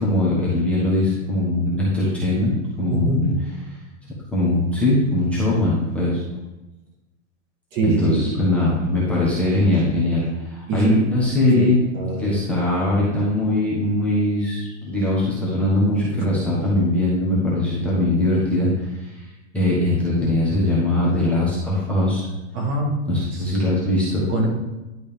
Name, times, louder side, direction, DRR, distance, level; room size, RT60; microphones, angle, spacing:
voice 1, 0.0-3.5 4.3-6.2 7.8-11.8 12.2-19.3 19.5-22.2 23.1-24.2, left 1 dB, 5° left, -8 dB, 1.4 m, -21 dB
voice 2, 2.9-3.2 7.7-8.2 10.7-11.0 11.5-12.4 16.2-16.3 22.5-22.9 24.3-24.5, right 3 dB, 30° right, 0 dB, 1.7 m, -23 dB
11.0 x 4.0 x 3.5 m, 1.0 s
supercardioid pair, 160°, 37 cm